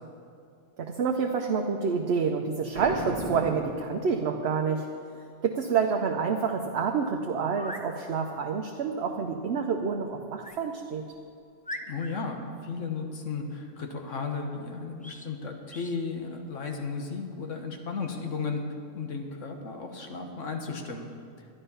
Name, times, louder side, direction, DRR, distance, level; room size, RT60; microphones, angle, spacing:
voice 1, 0.8-4.9 5.4-11.0, right 5 dB, 60° right, 3 dB, 0.9 m, -28 dB
Boom, 2.7-4.6, right 2 dB, 30° right, 1.2 m, -35 dB
sound 1, 7.4-7.9 10.4-10.6 11.1-11.2 11.6-12.3 15.0-15.3 15.7-16.0, left 1 dB, 10° left, 0.4 m, -40 dB
voice 2, 11.9-18.6 18.9-21.1, left 4 dB, 75° left, 3 dB, 1.6 m, -34 dB
12.0 x 11.0 x 5.5 m, 2.5 s
omnidirectional pair, 1.3 m